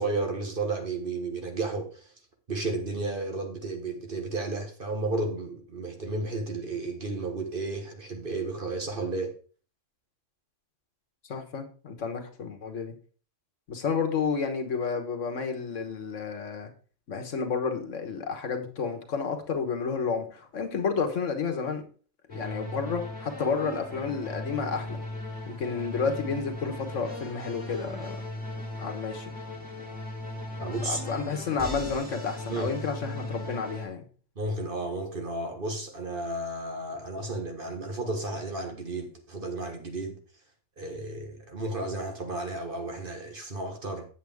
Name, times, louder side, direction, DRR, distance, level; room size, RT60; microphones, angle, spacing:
voice 1, 0.0-2.1 2.5-9.3 30.6-31.0 32.5-32.7 34.3-40.2 40.8-44.1, right 2 dB, 45° right, 1.6 m, -33 dB
voice 2, 11.3-12.9 13.7-16.7 17.1-21.8 22.3-25.0 25.5-28.2 28.8-29.3 30.6-34.0, left 5 dB, 80° left, 1.6 m, -31 dB
sound 1, 22.3-33.9, left 1 dB, 5° right, 2.9 m, -38 dB
8.0 x 7.9 x 3.5 m
omnidirectional pair, 1.3 m